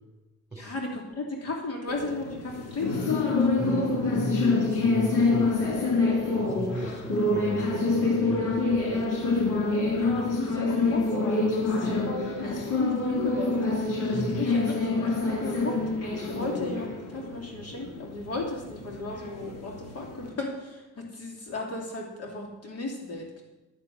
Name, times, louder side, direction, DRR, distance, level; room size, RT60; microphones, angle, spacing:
voice 1, 0.6-3.0 10.0-15.8 16.3-23.4, left 2 dB, 55° left, 0 dB, 2.9 m, -35 dB
sound 1, 1.9-20.3, left 3 dB, 90° left, 3.0 m, -26 dB
voice 2, 3.5-5.5 6.4-9.0 14.1-14.5, right 2 dB, 10° right, 2 dB, 4.6 m, -35 dB
11.0 x 6.9 x 9.2 m, 1.1 s
cardioid pair, 90°, 30 cm